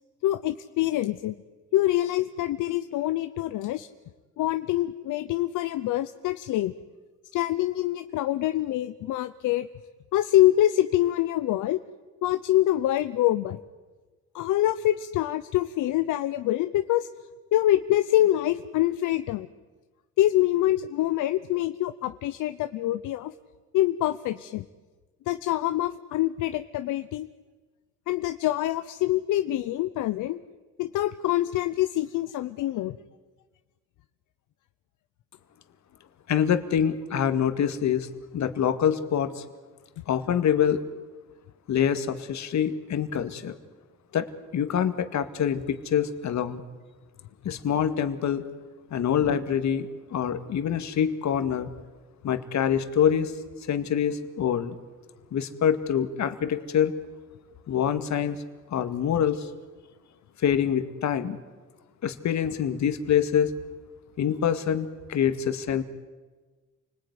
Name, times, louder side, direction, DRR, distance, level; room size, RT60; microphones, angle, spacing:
voice 1, 0.2-1.3 1.7-3.9 4.4-6.7 7.3-9.7 10.1-11.8 12.2-13.6 14.3-17.1 17.5-19.5 20.2-23.3 23.7-24.7 25.3-27.3 28.1-30.4 30.8-33.0, left 14 dB, 85° left, 10 dB, 0.8 m, -25 dB
voice 2, 36.3-39.4 40.1-40.8 41.7-43.6 44.1-46.6 47.4-48.5 48.9-51.7 52.2-53.3 53.6-54.8 55.3-56.9 57.7-58.4 58.7-59.5 60.4-61.4 62.0-63.5 64.2-65.8, left 8 dB, 65° left, 9 dB, 2.2 m, -25 dB
29.0 x 20.0 x 9.7 m, 1.3 s
cardioid pair, 90°, 30 cm